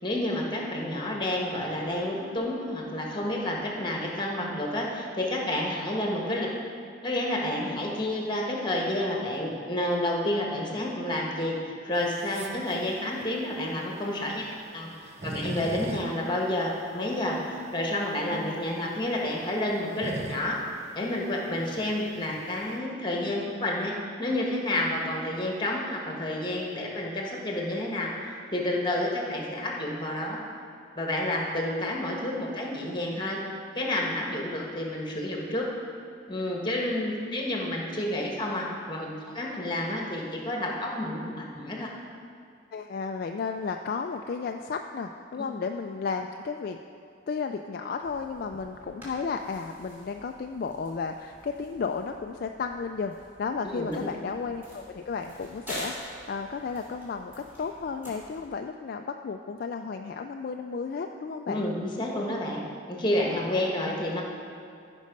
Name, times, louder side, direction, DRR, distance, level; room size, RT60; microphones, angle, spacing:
voice 1, 0.0-6.5 7.0-14.5 14.7-14.9 15.2-20.6 20.9-30.4 31.0-33.4 33.7-35.7 36.3-41.9 53.7-54.1 61.5-64.2, left 1 dB, 25° left, -1 dB, 1.4 m, -30 dB
sound 1, 11.9-22.8, right 2 dB, 35° right, 0.6 m, -41 dB
voice 2, 18.3-18.6 21.0-21.1 42.7-46.8 47.3-61.7, left 5 dB, 50° left, 5 dB, 0.3 m, -33 dB
sound 2, 48.0-58.5, equal, 10° right, 2.8 m, -46 dB
14.5 x 5.4 x 5.2 m, 2.5 s
head